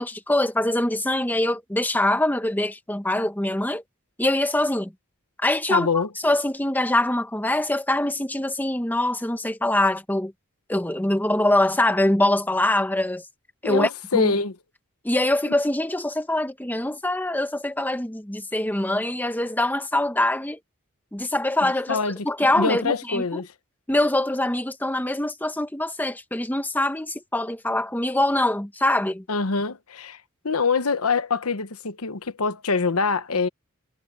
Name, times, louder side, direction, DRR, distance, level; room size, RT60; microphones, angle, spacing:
voice 1, 0.0-3.8 4.2-4.9 5.4-10.3 10.7-13.2 13.6-14.3 15.0-20.6 21.1-22.0 22.2-23.4 23.9-29.2, left 1 dB, 10° left, 1.0 m, -24 dB
voice 2, 5.7-6.1 13.6-14.5 15.4-15.5 21.6-23.5 29.3-30.2 30.4-33.5, left 4 dB, 85° left, 1.1 m, -25 dB
head